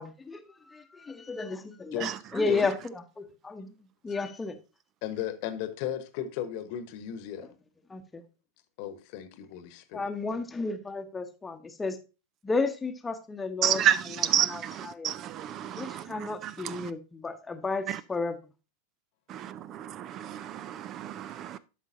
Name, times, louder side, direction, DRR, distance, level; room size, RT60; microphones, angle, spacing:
voice 1, 0.0-3.7 4.0-4.6 7.9-8.2 9.9-12.0 12.4-13.8 14.5-15.1 15.8-18.4, left 3 dB, 15° left, 0.9 m, -33 dB
voice 2, 5.0-7.5 8.8-10.1, left 10 dB, 45° left, 1.1 m, -35 dB
voice 3, 13.6-16.9 17.9-18.0 19.3-21.6, right 10 dB, 35° right, 0.4 m, -30 dB
12.0 x 5.6 x 2.6 m
figure-of-eight pair, 90°, 0 cm